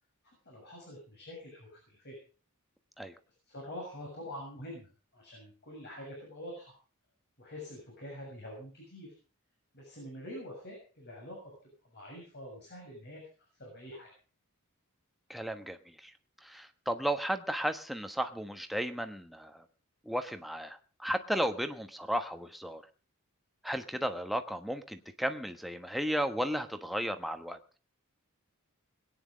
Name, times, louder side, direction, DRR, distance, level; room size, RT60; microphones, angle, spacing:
voice 1, 0.2-2.2 3.5-4.9 5.1-6.7 7.4-9.1 9.7-11.5 11.9-13.2 13.6-14.1, left 1 dB, 50° left, -1 dB, 6.9 m, -45 dB
voice 2, 15.3-16.1 16.4-19.6 20.0-22.8 23.6-27.6, equal, ahead, 7 dB, 1.2 m, -34 dB
21.5 x 9.8 x 5.2 m, 0.37 s
head